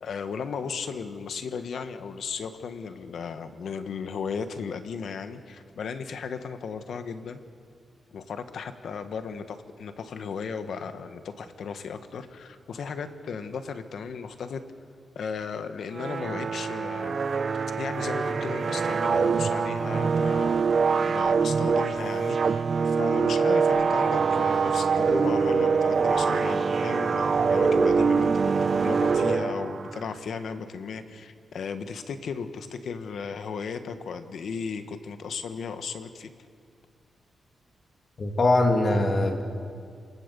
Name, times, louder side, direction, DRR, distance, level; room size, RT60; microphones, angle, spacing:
voice 1, 0.0-7.4 8.1-14.6 15.1-17.2 17.8-20.6 21.0-36.3, left 6 dB, 70° left, 9 dB, 1.4 m, -35 dB
sound 1, 15.9-30.0, right 5 dB, 50° right, 0.7 m, -24 dB
voice 2, 38.2-39.4, left 2 dB, 45° left, 3 dB, 2.8 m, -22 dB
28.0 x 18.0 x 7.0 m, 2.2 s
wide cardioid pair, 115°, 0 cm